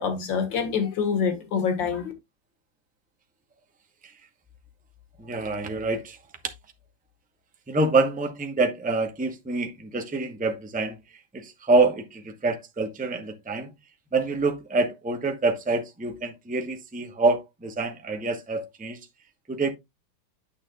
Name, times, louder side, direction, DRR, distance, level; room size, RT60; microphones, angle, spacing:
voice 1, 0.0-2.1, left 6 dB, 70° left, 2.2 m, -26 dB
voice 2, 5.2-6.2 7.7-11.0 11.3-13.7 14.1-19.0 19.5-19.7, right 3 dB, 10° right, 0.3 m, -26 dB
9.7 x 6.3 x 2.3 m
omnidirectional pair, 2.2 m